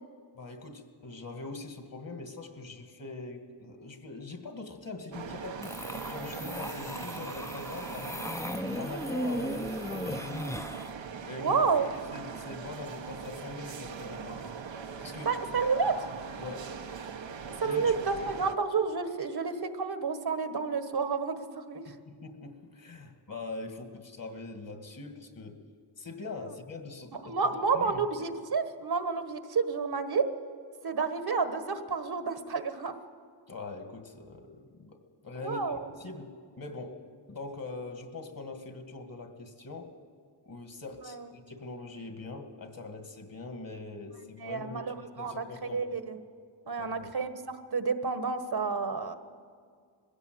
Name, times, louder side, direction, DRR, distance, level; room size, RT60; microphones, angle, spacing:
voice 1, 0.4-5.7 6.1-8.3 8.8-10.7 11.2-14.5 15.0-15.3 16.4-16.7 17.6-17.9 21.9-25.6 26.0-28.0 33.5-36.3 36.6-37.0 37.3-39.9 40.4-45.8 46.8-47.1, left 3 dB, 50° left, 6 dB, 2.4 m, -42 dB
sound 1, 5.1-18.6, right 6 dB, 80° right, 1.2 m, -41 dB
sound 2, 5.6-10.9, equal, 5° left, 0.7 m, -36 dB
voice 2, 11.4-11.9 15.2-15.9 17.6-21.9 27.2-30.2 30.8-32.9 35.4-35.9 41.0-41.3 44.4-46.2 46.7-49.1, right 5 dB, 55° right, 9 dB, 1.4 m, -30 dB
21.0 x 16.0 x 7.9 m, 2.1 s
wide cardioid pair, 80°, 44 cm